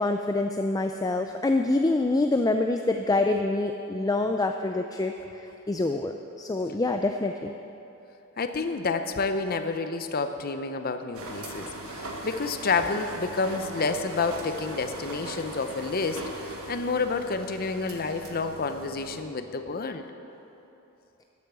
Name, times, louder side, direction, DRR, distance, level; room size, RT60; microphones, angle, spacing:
voice 1, 0.0-7.5, left 2 dB, 15° left, 5 dB, 0.4 m, -26 dB
voice 2, 8.4-20.1, left 4 dB, 45° left, 8 dB, 0.7 m, -29 dB
sound 1, 11.1-19.2, right 1 dB, 90° right, 1.6 m, -39 dB
13.0 x 8.4 x 6.8 m, 3.0 s
head